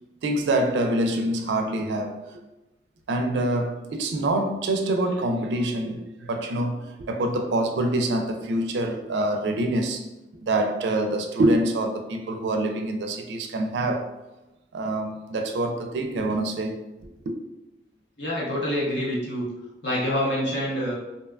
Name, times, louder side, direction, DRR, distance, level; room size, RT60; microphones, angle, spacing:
voice 1, 0.2-2.2 3.1-10.1 10.4-14.2 14.7-16.8 17.3-17.4, right 1 dB, 75° right, 0.3 m, -25 dB
voice 2, 18.2-19.4 19.8-20.9, equal, 75° left, 0.8 m, -26 dB
2.6 x 2.2 x 2.3 m
head